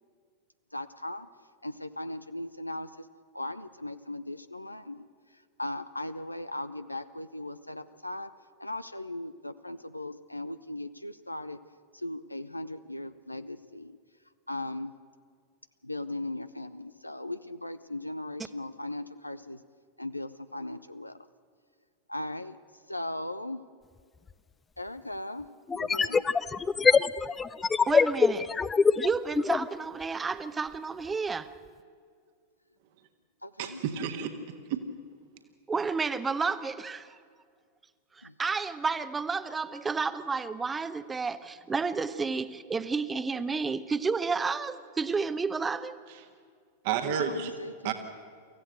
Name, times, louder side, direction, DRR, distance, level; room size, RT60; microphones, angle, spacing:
voice 1, 0.7-1.3 1.6-3.1 3.3-5.1 5.6-8.3 8.6-11.6 11.9-14.0 14.5-14.9 15.8-19.6 20.0-21.3 22.1-22.6 22.9-23.6 24.8-25.5 25.7-26.2 33.4-33.8 38.2-38.3 47.1-47.9, left 1 dB, 85° left, 0.6 m, -38 dB
sound 1, 24.3-24.4 25.7-29.7, left 5 dB, 15° left, 0.5 m, -24 dB
voice 2, 27.9-28.5 29.0-31.5 35.7-37.2 38.1-46.0, right 4 dB, 15° right, 0.9 m, -31 dB
voice 3, 33.6-34.8 46.1-46.2 46.8-47.5 47.8-47.9, right 8 dB, 50° right, 1.5 m, -31 dB
24.5 x 15.5 x 8.0 m
figure-of-eight pair, 90°, 0 cm